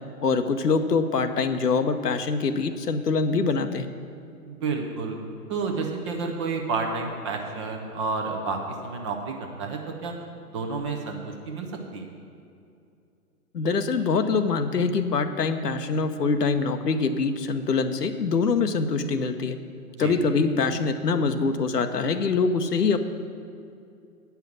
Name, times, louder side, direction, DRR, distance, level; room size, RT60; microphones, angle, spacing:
voice 1, 0.2-3.9 13.5-19.6 20.0-23.0, left 4 dB, 85° left, 9 dB, 0.9 m, -24 dB
voice 2, 4.5-5.2 5.5-10.1 10.5-12.1 20.0-20.1, right 4 dB, 20° right, 2 dB, 0.6 m, -30 dB
8.9 x 5.7 x 7.8 m, 2.6 s
hypercardioid pair, 135°, 46 cm